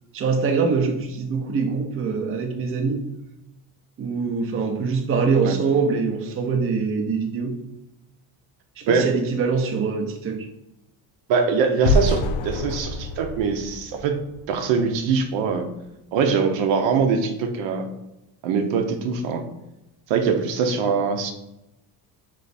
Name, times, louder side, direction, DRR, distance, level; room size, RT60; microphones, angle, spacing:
voice 1, 0.1-3.0 4.0-7.6 8.8-10.5, right 5 dB, 30° right, 4 dB, 0.5 m, -23 dB
voice 2, 11.3-14.2 14.5-15.7 16.1-17.9 18.4-19.4 20.1-21.3, right 5 dB, 85° right, 6 dB, 0.7 m, -22 dB
sound 1, 11.8-14.8, left 2 dB, 90° left, 0.6 m, -26 dB
3.4 x 3.1 x 4.0 m, 0.90 s
cardioid pair, 140°, 44 cm